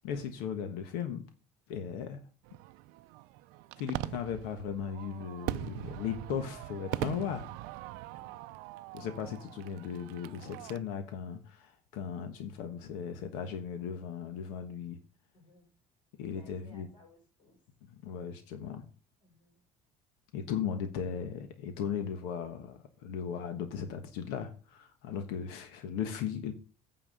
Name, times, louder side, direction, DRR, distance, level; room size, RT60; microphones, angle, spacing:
voice 1, 0.0-1.2 1.7-2.2 3.8-7.5 8.9-15.0 16.2-16.9 18.0-18.8 20.3-26.5, left 7 dB, 90° left, 7 dB, 1.3 m, -37 dB
Fireworks, 2.4-10.8, right 17 dB, 75° right, 0.5 m, -41 dB
voice 2, 8.1-8.6 15.3-15.7 16.2-17.6 19.2-19.6, left 1 dB, 30° left, 1 dB, 5.8 m, -61 dB
9.2 x 4.7 x 6.7 m, 0.37 s
cardioid pair, 170°, 16 cm